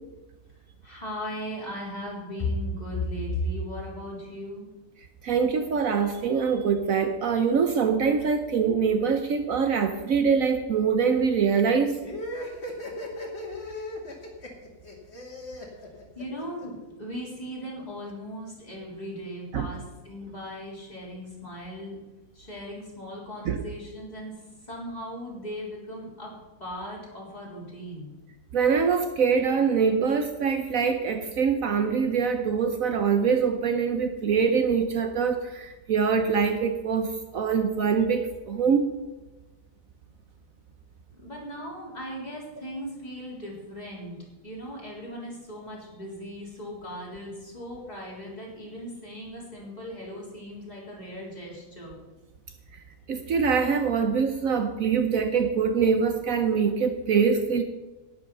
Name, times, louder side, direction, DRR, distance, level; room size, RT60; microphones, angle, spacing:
voice 1, 0.8-4.7 16.2-22.0 22.3-28.1 41.2-52.0, left 1 dB, 25° left, -4 dB, 3.8 m, -37 dB
voice 2, 5.2-12.0 19.5-19.7 23.5-23.6 28.5-38.8 53.1-57.6, right 6 dB, 65° right, 7 dB, 1.2 m, -24 dB
sound 1, 12.0-16.7, left 1 dB, 45° left, 2.4 m, -37 dB
11.5 x 10.0 x 5.5 m, 1.1 s
omnidirectional pair, 1.6 m